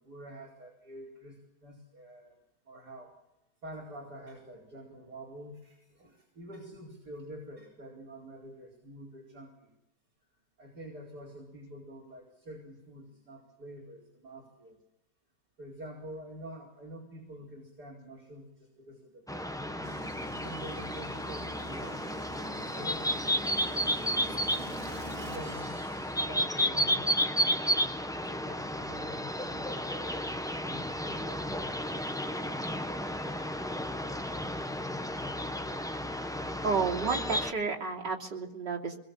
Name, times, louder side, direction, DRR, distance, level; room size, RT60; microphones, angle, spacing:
voice 1, 0.0-2.3 2.7-3.1 3.6-9.7 10.6-14.8 15.6-19.8 20.3-22.3 22.7-24.5 25.2-25.7 26.1-27.4 28.1-34.0, right 1 dB, 65° right, -2 dB, 5.1 m, -47 dB
sound 1, 19.3-37.5, equal, 5° left, 0.6 m, -32 dB
sound 2, 19.8-26.7, right 2 dB, 40° right, 4.0 m, -47 dB
voice 2, 36.6-39.0, right 5 dB, 80° right, -2 dB, 3.8 m, -31 dB
26.0 x 21.5 x 7.5 m, 0.91 s
omnidirectional pair, 1.9 m